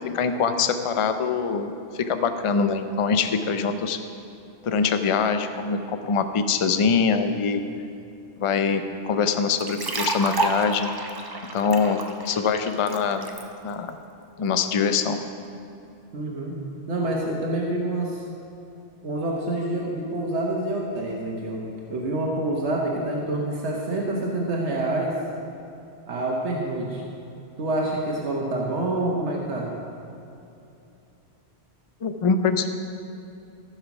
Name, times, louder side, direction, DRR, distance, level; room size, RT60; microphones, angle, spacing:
voice 1, 0.1-4.0 4.6-7.6 8.4-10.9 11.5-13.3 13.6-14.0 14.4-15.2 32.0-32.8, left 5 dB, 40° left, 8 dB, 0.5 m, -24 dB
sound 1, 9.6-13.4, right 2 dB, 25° right, 0.6 m, -29 dB
voice 2, 16.1-16.5 16.9-18.2 19.0-25.1 26.1-27.0 27.6-29.8, right 1 dB, 90° right, -2 dB, 1.4 m, -27 dB
14.5 x 5.8 x 5.9 m, 2.7 s
omnidirectional pair, 1.1 m